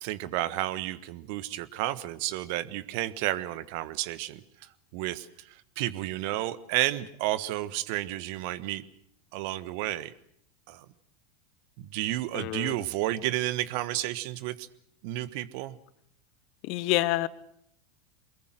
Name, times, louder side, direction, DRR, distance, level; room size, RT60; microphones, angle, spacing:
voice 1, 0.0-4.4 4.9-8.8 9.3-10.1 10.7-10.8 11.8-14.7 15.0-15.7, right 15 dB, 55° right, 16 dB, 1.3 m, -31 dB
voice 2, 12.3-12.7 16.7-17.3, left 17 dB, 55° left, 18 dB, 1.1 m, -27 dB
24.0 x 21.5 x 7.8 m, 0.67 s
hypercardioid pair, 85°, 0 cm